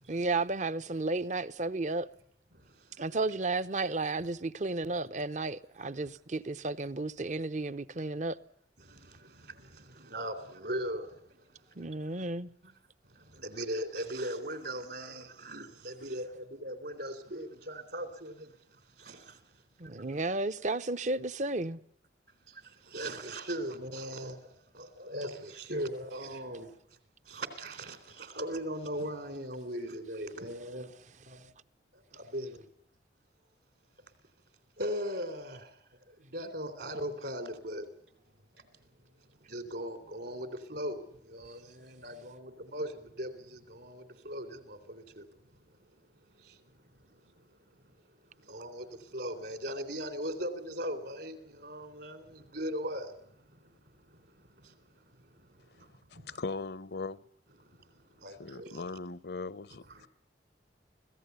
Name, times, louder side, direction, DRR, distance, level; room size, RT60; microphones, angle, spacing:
voice 1, 0.1-2.1 3.0-8.4 11.8-12.5 19.8-21.8, right 2 dB, 40° right, 0.8 m, -33 dB
voice 2, 2.5-3.0 8.8-11.6 11.9-12.0 12.6-12.7 13.1-19.4 22.5-26.7 27.3-30.9 31.2-31.4 31.9-32.6 34.8-35.8 36.1-37.9 38.6-38.7 39.4-45.4 46.4-46.6 47.0-47.6 48.4-54.8 55.1-56.4 57.6-58.8 59.9-60.0, equal, 65° right, 3.8 m, -40 dB
voice 3, 56.3-57.2 58.4-60.1, left 3 dB, 65° left, 0.8 m, -39 dB
25.5 x 17.0 x 8.2 m
head